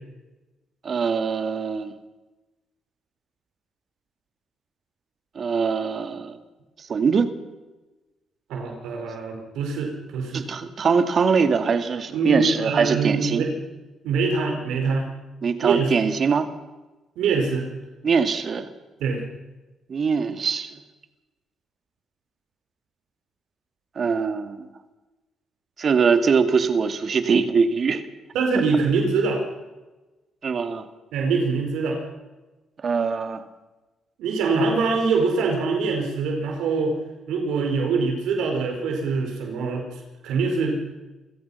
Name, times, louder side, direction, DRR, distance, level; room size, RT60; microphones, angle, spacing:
voice 1, 0.8-1.9 5.4-6.4 6.9-7.3 10.3-13.5 15.4-16.5 18.0-18.7 19.9-20.7 24.0-24.7 25.8-28.0 30.4-30.9 32.8-33.4, right 5 dB, 50° right, 9 dB, 2.3 m, -22 dB
voice 2, 8.5-10.4 12.1-13.6 14.0-15.1 15.6-15.9 17.2-17.6 19.0-19.2 28.3-29.4 31.1-32.0 34.2-36.9 37.3-40.8, right 4 dB, 85° right, 2 dB, 5.0 m, -24 dB
28.5 x 16.5 x 5.8 m, 1.1 s
cardioid pair, 90°, 0 cm